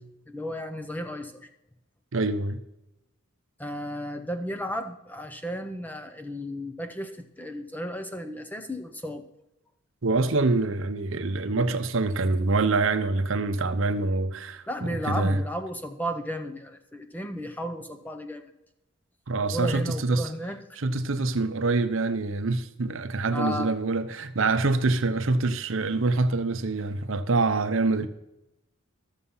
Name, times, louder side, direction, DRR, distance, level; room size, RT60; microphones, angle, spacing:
voice 1, 0.3-1.5 3.6-7.1 7.4-9.2 14.7-18.5 19.5-20.8 23.3-23.7, equal, 10° left, 0.7 m, -34 dB
voice 2, 2.1-2.6 10.0-15.4 19.3-20.3 20.8-28.1, right 3 dB, 65° right, 0.7 m, -25 dB
13.0 x 7.0 x 5.5 m
head